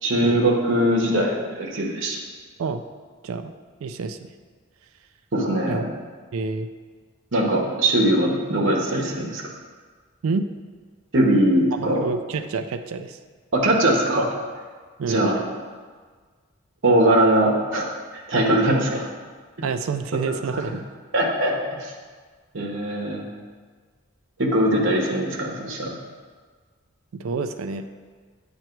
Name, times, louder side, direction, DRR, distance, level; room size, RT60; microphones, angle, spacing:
voice 1, 0.0-2.2 5.3-5.9 7.3-9.4 11.1-12.0 13.5-14.3 15.1-15.4 16.8-17.9 18.3-19.1 21.1-21.5 21.8-21.9 22.5-23.2 24.4-26.0, right 1 dB, 60° right, -2 dB, 1.0 m, -21 dB
voice 2, 3.8-4.3 5.7-5.9 6.3-6.7 10.2-10.5 11.8-13.2 15.0-15.2 19.6-20.8 27.1-27.9, right 4 dB, 80° right, 9 dB, 0.4 m, -28 dB
9.0 x 3.1 x 4.5 m, 1.5 s
head